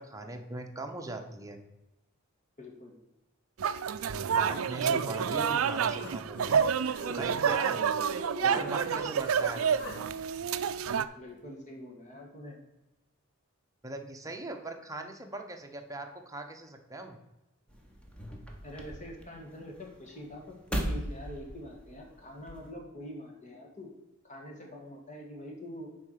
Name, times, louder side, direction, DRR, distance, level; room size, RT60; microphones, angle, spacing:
voice 1, 0.0-1.6 4.3-6.6 7.2-7.8 8.4-9.6 13.8-17.2, right 2 dB, 15° right, 4 dB, 0.9 m, -39 dB
voice 2, 2.6-3.0 11.2-12.6 18.6-23.9 24.2-25.9, equal, 35° left, 1 dB, 1.9 m, -45 dB
sound 1, 3.6-11.1, right 7 dB, 70° right, 0.4 m, -29 dB
Human voice, 5.3-8.6 8.9-10.0, equal, 55° left, 1.8 m, -44 dB
sound 2, 17.7-22.7, equal, 5° left, 1.1 m, -39 dB
7.0 x 4.8 x 6.6 m, 0.96 s
head